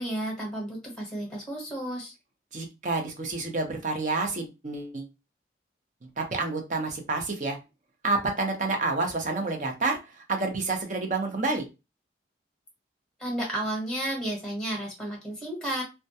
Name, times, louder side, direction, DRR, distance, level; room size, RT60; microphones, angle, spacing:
voice 1, 0.0-2.1 13.2-15.8, right 1 dB, 5° left, -1 dB, 0.9 m, -32 dB
voice 2, 2.5-5.1 6.2-7.6 8.0-11.6, right 3 dB, 45° right, 3 dB, 0.6 m, -29 dB
2.2 x 2.2 x 2.6 m, 0.25 s
head